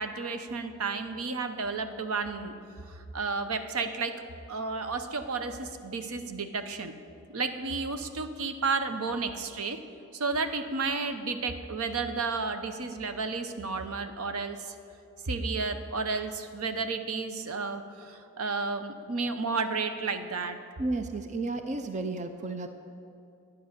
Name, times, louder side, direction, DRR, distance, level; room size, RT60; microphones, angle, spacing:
voice 1, 0.0-2.5 2.9-4.1 4.5-6.9 7.3-9.8 10.1-14.8 15.2-20.6, right 4 dB, 70° right, 8 dB, 0.8 m, -32 dB
voice 2, 20.8-22.7, right 2 dB, 35° right, 8 dB, 0.5 m, -32 dB
11.5 x 9.3 x 6.7 m, 2.6 s
head